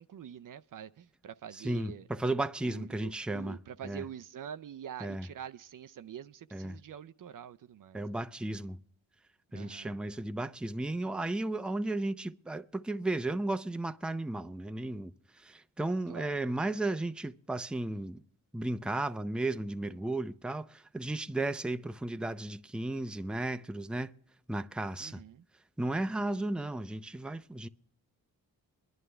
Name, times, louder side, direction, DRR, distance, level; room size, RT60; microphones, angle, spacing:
voice 1, 0.0-2.1 2.6-8.1 9.5-10.0 16.1-16.3 25.0-25.4 26.1-26.4, right 9 dB, 60° right, 0.5 m, -46 dB
voice 2, 1.5-4.0 5.0-5.3 6.5-6.8 7.9-8.8 9.5-18.2 18.5-24.1 24.5-25.2 25.8-27.7, right 2 dB, ahead, 0.5 m, -34 dB
22.5 x 11.0 x 3.3 m
cardioid pair, 60°, 38 cm